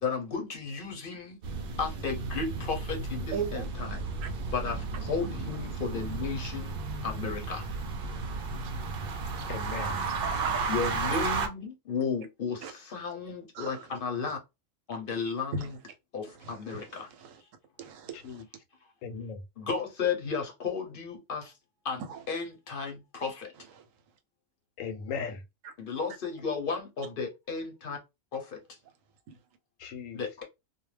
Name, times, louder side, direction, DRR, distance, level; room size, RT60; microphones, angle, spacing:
voice 1, 0.0-1.4 1.8-4.0 4.5-7.7 10.7-14.4 14.9-15.8 16.1-17.1 19.6-21.5 21.8-23.5 25.8-28.0 28.3-28.6 30.1-30.4, left 5 dB, 50° left, 0.8 m, -34 dB
sound 1, 1.4-11.5, right 4 dB, 60° right, 0.6 m, -33 dB
voice 2, 3.3-4.3 9.9-10.6 12.6-12.7 13.6-13.8 15.5-15.7 16.7-16.8 17.8-18.4 22.1-22.2 25.6-25.7, right 5 dB, 85° right, 1.0 m, -37 dB
voice 3, 9.5-9.9 18.2-18.4 19.0-19.4 24.8-25.4 29.8-30.2, left 6 dB, 85° left, 1.0 m, -37 dB
2.4 x 2.2 x 3.1 m
omnidirectional pair, 1.3 m